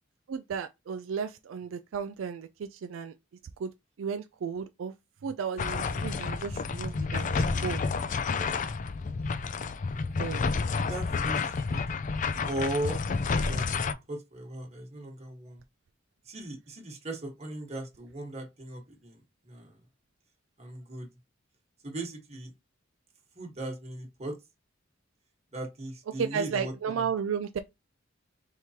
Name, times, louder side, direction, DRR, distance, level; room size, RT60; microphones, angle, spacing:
voice 1, 0.3-3.1 3.6-3.7 4.0-4.9 5.2-7.9 10.2-10.5 26.2-27.6, right 6 dB, 85° right, 0.4 m, -34 dB
sound 1, 5.6-13.9, left 4 dB, 40° left, 0.4 m, -30 dB
voice 2, 10.7-11.9 12.5-13.0 13.4-15.6 16.2-19.8 20.6-21.1 21.8-22.5 23.3-24.4 25.5-27.1, right 1 dB, 35° right, 1.4 m, -38 dB
4.5 x 3.6 x 2.8 m
head